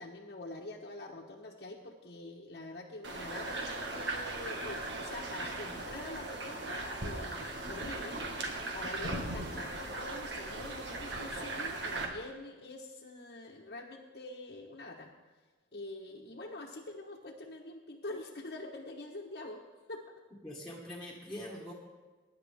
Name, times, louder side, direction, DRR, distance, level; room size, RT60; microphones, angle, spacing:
voice 1, 0.0-8.3 8.7-15.1 15.7-19.6 19.9-20.1, left 2 dB, 65° left, -3 dB, 1.2 m, -45 dB
sound 1, 3.0-12.1, right 2 dB, 85° right, 1.7 m, -38 dB
voice 2, 20.4-21.7, left 1 dB, 5° left, -6 dB, 1.7 m, -43 dB
20.0 x 10.0 x 3.5 m, 1.3 s
head